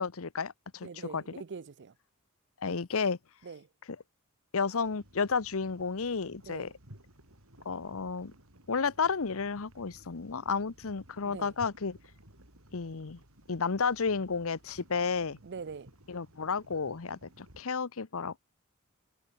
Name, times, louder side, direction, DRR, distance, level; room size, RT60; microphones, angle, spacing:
voice 1, 0.0-0.9 1.1-1.2 2.6-3.2 4.5-6.7 7.6-8.3 8.7-12.0 12.7-13.2 13.5-15.4 16.1-18.4, left 5 dB, 70° left, 0.9 m, -32 dB
voice 2, 0.8-1.9 3.4-3.7 6.5-6.7 11.2-11.5 15.4-15.9, right 5 dB, 55° right, 0.5 m, -43 dB
sound 1, 4.8-17.6, right 1 dB, 70° right, 6.8 m, -57 dB
head